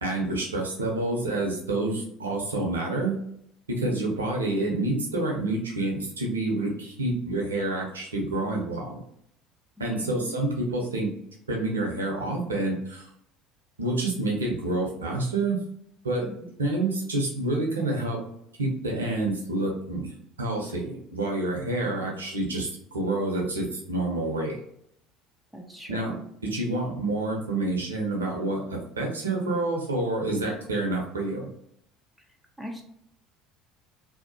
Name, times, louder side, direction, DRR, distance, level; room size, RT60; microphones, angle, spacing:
voice 1, 0.0-3.2 3.7-9.0 9.8-11.1 11.5-13.1 13.8-15.6 16.0-16.3 16.6-18.2 18.6-20.1 20.4-24.6 25.9-26.1 26.4-31.5, right 2 dB, 90° right, 0 dB, 0.7 m, -28 dB
voice 2, 9.8-10.3 16.3-16.5 21.8-22.1 25.5-26.2 32.6-32.8, equal, ahead, 1 dB, 0.6 m, -40 dB
2.7 x 2.0 x 2.8 m, 0.73 s
hypercardioid pair, 65°, 0 cm